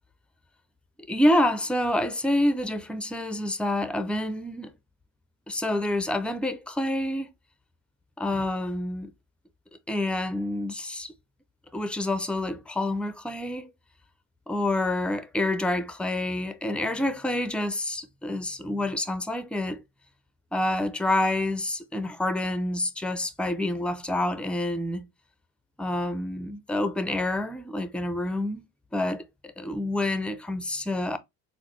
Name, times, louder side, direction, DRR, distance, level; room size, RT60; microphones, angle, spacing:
voice 1, 1.1-4.7 5.5-7.3 8.2-9.1 9.9-11.1 11.7-13.7 14.5-19.8 20.5-25.1 25.8-28.6 28.9-31.2, left 1 dB, 5° left, 0.4 m, -28 dB
3.9 x 2.0 x 3.1 m
supercardioid pair, 95°, 33 cm